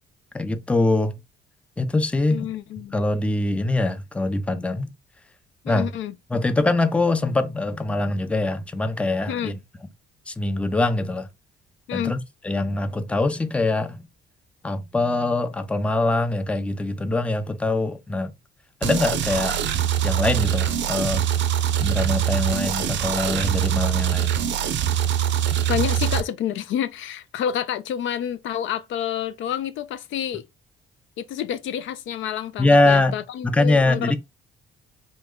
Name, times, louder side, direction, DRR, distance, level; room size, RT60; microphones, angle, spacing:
voice 1, 0.3-1.2 1.8-2.5 2.9-4.9 5.7-5.9 6.3-9.6 10.3-11.3 11.9-14.1 14.6-18.3 18.8-19.6 20.0-21.3 21.8-24.4 32.6-33.2 33.4-34.2, left 2 dB, 5° left, 0.4 m, -23 dB
voice 2, 2.3-3.0 5.6-6.1 9.3-9.6 11.9-12.2 25.7-30.5 31.2-34.2, left 9 dB, 75° left, 0.4 m, -28 dB
sound 1, 18.8-26.2, right 10 dB, 65° right, 0.5 m, -23 dB
3.0 x 2.1 x 3.5 m
cardioid pair, 90°, 20 cm